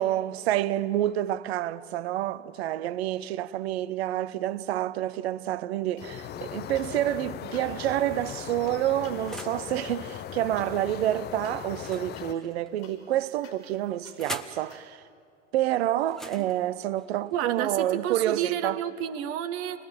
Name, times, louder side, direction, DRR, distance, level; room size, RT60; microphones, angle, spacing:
voice 1, 0.0-15.0 15.5-18.8, right 13 dB, 55° right, 0.8 m, -28 dB
sound 1, 5.9-7.1 7.4-14.9, left 6 dB, 55° left, 5.5 m, -55 dB
sound 2, 6.0-12.3, left 10 dB, 25° left, 0.7 m, -38 dB
sound 3, 6.5-7.3 8.0-9.7 11.7-12.8 13.7-14.7 16.0-18.0, equal, ahead, 1.1 m, -44 dB
voice 2, 17.3-19.8, right 10 dB, 40° right, 1.2 m, -30 dB
28.5 x 20.5 x 7.6 m
figure-of-eight pair, 80°, 37 cm